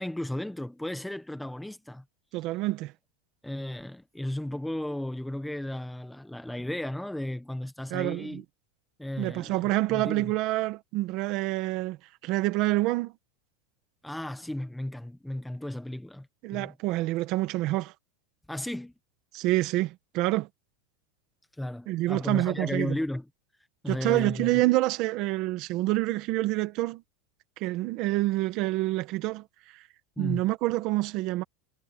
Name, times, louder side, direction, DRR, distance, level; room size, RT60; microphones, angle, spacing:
voice 1, 0.0-2.0 3.4-8.4 9.0-10.3 14.0-16.7 18.5-18.9 21.6-23.2 23.8-24.6 30.2-30.5, left 1 dB, ahead, 1.2 m, -34 dB
voice 2, 2.3-2.9 7.9-8.4 9.2-12.0 12.2-13.1 16.4-17.9 19.3-20.5 21.9-23.0 23.9-27.0 27.6-29.8 30.2-31.4, right 18 dB, 40° right, 1.6 m, -27 dB
supercardioid pair, 165°, 0 cm